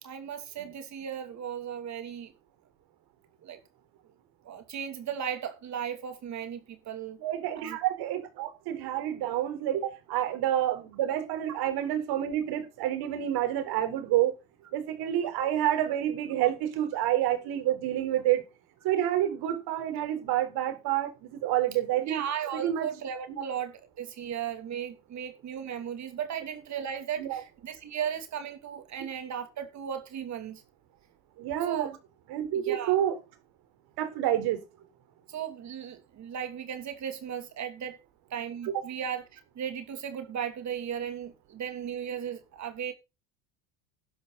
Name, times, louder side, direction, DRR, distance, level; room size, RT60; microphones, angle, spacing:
voice 1, 0.0-2.3 3.4-3.6 4.4-7.2 7.6-7.8 22.0-30.6 31.7-31.9 32.5-33.0 35.3-38.0 38.3-42.9, right 8 dB, 40° right, 2.9 m, -36 dB
voice 2, 7.2-14.3 14.7-18.4 18.8-22.2 22.5-22.9 23.3-23.4 27.2-27.4 31.4-31.9 32.3-33.2 34.0-34.6, right 12 dB, 60° right, 4.1 m, -28 dB
12.0 x 11.0 x 4.1 m
supercardioid pair, 115°, 43 cm